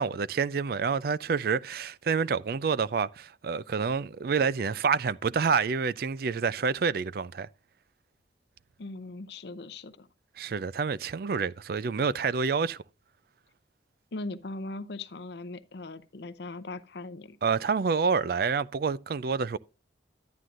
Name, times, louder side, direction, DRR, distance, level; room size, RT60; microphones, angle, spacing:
voice 1, 0.0-7.5 10.4-12.8 17.4-19.6, right 5 dB, 50° right, 0.3 m, -28 dB
voice 2, 8.8-10.1 14.1-17.4, left 2 dB, 60° left, 0.6 m, -39 dB
11.5 x 9.2 x 2.5 m
head